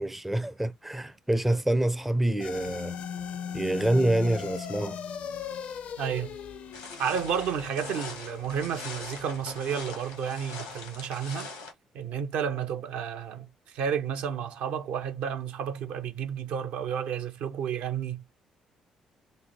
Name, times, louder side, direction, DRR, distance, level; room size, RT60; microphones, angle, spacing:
voice 1, 0.0-3.0 3.5-5.0, right 1 dB, 5° right, 0.4 m, -26 dB
sound 1, 2.4-10.9, left 7 dB, 60° left, 0.5 m, -39 dB
voice 2, 6.0-6.4 7.0-11.5 11.9-18.2, right 7 dB, 65° right, 0.6 m, -31 dB
sound 2, 6.7-11.7, left 3 dB, 85° left, 1.2 m, -42 dB
3.1 x 2.2 x 4.1 m
figure-of-eight pair, 45°, 3 cm